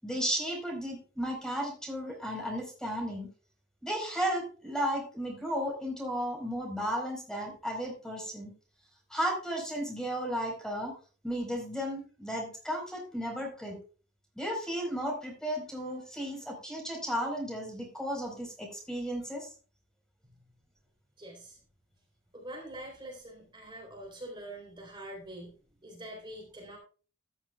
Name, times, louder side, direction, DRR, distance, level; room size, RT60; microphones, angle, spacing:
voice 1, 0.0-3.3 3.8-8.5 9.1-10.9 11.2-13.8 14.4-19.5, equal, 5° left, 1 dB, 4.5 m, -34 dB
voice 2, 21.2-21.6 22.3-25.5 25.8-26.8, right 1 dB, 25° right, 0 dB, 3.7 m, -44 dB
14.0 x 11.0 x 2.3 m, 0.38 s
head